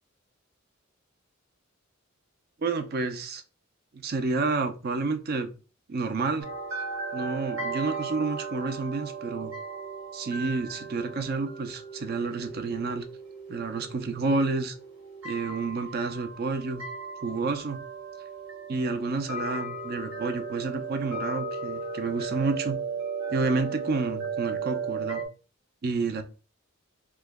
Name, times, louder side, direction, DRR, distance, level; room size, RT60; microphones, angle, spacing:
voice 1, 2.6-3.4 3.9-5.5 5.9-6.5 7.1-9.5 10.1-13.0 13.5-14.7 15.2-16.9 17.2-17.8 18.7-22.8 23.3-25.2 25.8-26.2, right 3 dB, 50° right, 8 dB, 0.5 m, -29 dB
sound 1, 6.4-25.3, right 4 dB, 75° right, 1.2 m, -36 dB
3.0 x 2.2 x 3.4 m, 0.34 s
head